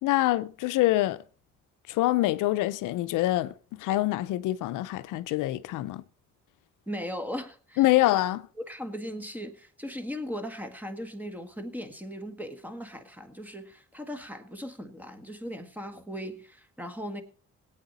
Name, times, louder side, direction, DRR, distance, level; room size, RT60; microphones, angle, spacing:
voice 1, 0.0-1.2 1.9-6.0 7.8-8.4, left 16 dB, 85° left, 0.6 m, -25 dB
voice 2, 6.9-7.8 8.6-17.2, equal, 5° right, 1.6 m, -38 dB
18.0 x 8.8 x 4.1 m
cardioid pair, 90°, 30 cm